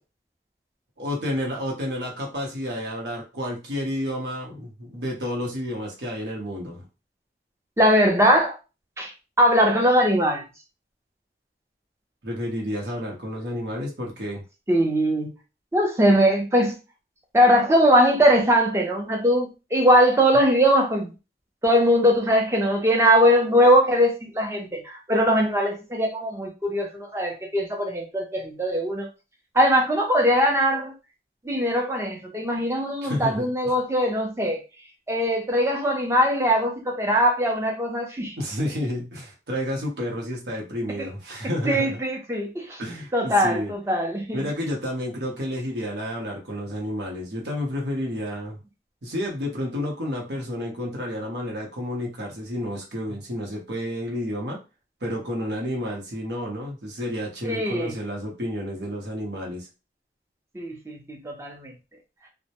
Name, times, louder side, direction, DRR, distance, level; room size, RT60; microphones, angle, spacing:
voice 1, 1.0-6.8 12.2-14.4 33.0-33.5 38.4-42.0 42.8-43.7 44.3-48.6 49.0-54.6 55.0-59.7, equal, 75° right, 0.8 m, -30 dB
voice 2, 7.8-8.6 9.0-9.1 9.4-10.4 14.7-15.3 15.7-16.8 17.3-21.1 21.6-29.1 29.5-30.9 31.4-34.6 35.1-38.4 41.0-41.1 41.7-42.8 43.1-44.4 57.4-57.9 60.5-61.7, equal, 15° right, 0.5 m, -21 dB
2.1 x 2.1 x 2.8 m
head